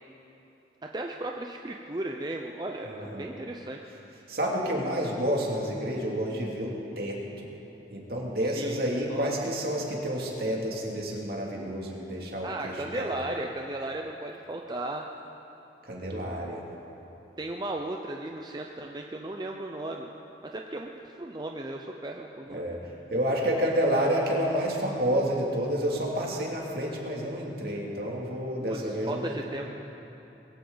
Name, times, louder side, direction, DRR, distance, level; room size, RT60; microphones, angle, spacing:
voice 1, 0.8-3.8 8.4-9.3 12.4-15.0 17.4-20.1 20.4-22.7 23.6-23.7 28.6-29.7, right 2 dB, 25° right, 2 dB, 0.6 m, -36 dB
voice 2, 2.8-3.3 4.3-7.2 7.9-13.2 15.8-16.6 22.5-22.8 23.1-29.5, equal, 60° right, -2 dB, 2.5 m, -29 dB
21.5 x 15.5 x 4.0 m, 3.0 s
head